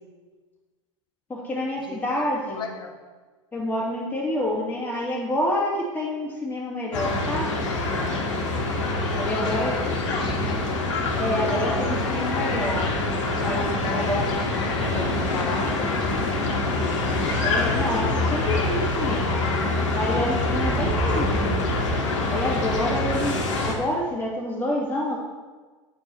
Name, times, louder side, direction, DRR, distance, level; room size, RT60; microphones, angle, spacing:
voice 1, 1.3-2.6 3.5-7.7 9.1-9.8 11.2-12.9 13.4-13.6 13.9-14.2 17.4-19.4 19.9-21.7 22.3-25.2, left 1 dB, 10° left, -4 dB, 2.5 m, -28 dB
voice 2, 2.5-3.0 9.2-10.7 11.8-12.0 13.5-14.0 14.4-17.0, left 4 dB, 30° left, 2 dB, 1.3 m, -35 dB
sound 1, 6.9-23.7, left 2 dB, 70° left, 1.5 m, -25 dB
sound 2, 10.2-22.2, right 4 dB, 20° right, 0.7 m, -37 dB
9.1 x 4.5 x 4.6 m, 1.4 s
hypercardioid pair, 90°, 16 cm